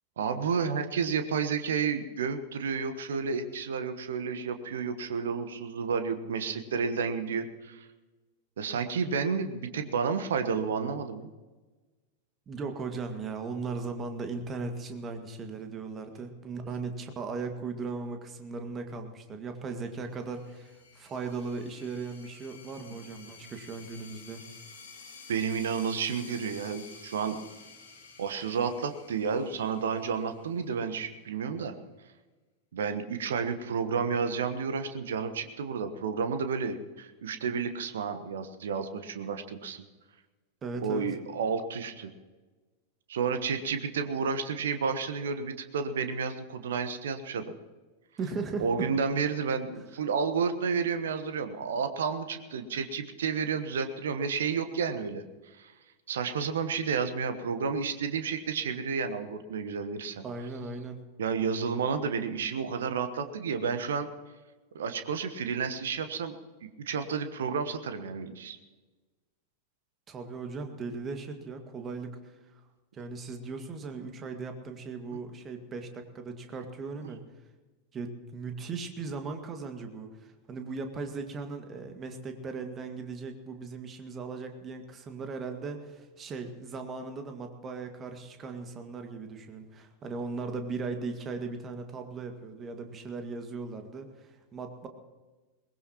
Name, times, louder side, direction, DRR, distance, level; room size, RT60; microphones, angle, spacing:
voice 1, 0.2-7.9 8.6-11.3 22.9-23.0 25.3-27.4 28.2-31.8 32.7-39.8 40.8-42.1 43.1-47.5 48.6-55.2 55.6-55.7 56.1-60.2 61.2-64.1 64.7-66.3 66.6-68.6 77.0-77.1, right 5 dB, 60° right, 9 dB, 1.2 m, -31 dB
voice 2, 12.5-24.4 40.6-41.1 48.2-48.9 60.2-61.0 70.1-72.2 72.5-72.6 72.9-77.2 77.9-94.9, right 4 dB, 25° right, 5 dB, 2.0 m, -38 dB
sound 1, 19.9-31.2, left 4 dB, 65° left, 3.3 m, -51 dB
22.0 x 20.0 x 3.0 m, 1.3 s
figure-of-eight pair, 90°, 0 cm